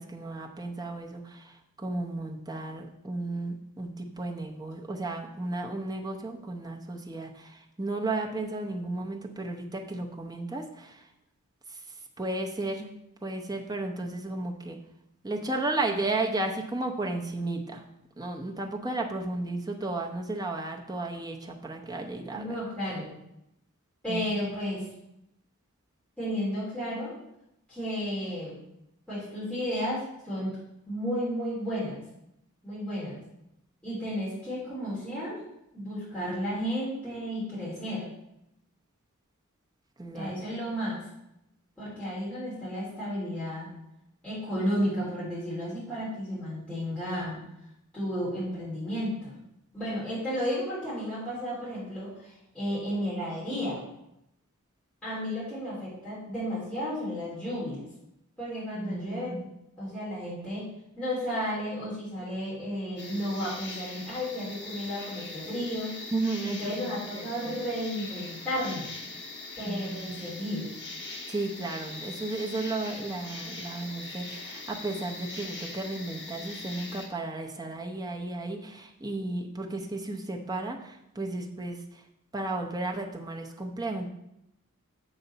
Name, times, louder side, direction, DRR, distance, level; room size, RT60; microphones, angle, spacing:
voice 1, 0.0-11.1 11.7-11.8 12.2-12.9 13.2-14.8 15.2-17.8 18.2-22.9 24.1-24.2 40.0-40.4 58.7-59.4 66.1-67.6 69.6-70.3 71.3-82.0 82.3-84.1, right 2 dB, 15° right, 1 dB, 0.7 m, -34 dB
voice 2, 22.3-23.1 24.0-24.8 26.2-27.1 27.7-28.6 29.1-30.6 30.9-32.0 32.6-33.2 33.8-35.4 35.7-38.1 40.1-41.0 41.8-43.7 44.2-47.4 47.9-49.3 49.7-53.8 55.0-57.8 58.4-59.4 59.8-60.6 61.0-66.1 66.4-68.9 69.6-70.6, equal, 5° left, -11 dB, 3.0 m, -33 dB
sound 1, 63.0-77.1, left 3 dB, 50° left, 1.3 m, -41 dB
6.9 x 4.0 x 5.5 m, 0.83 s
head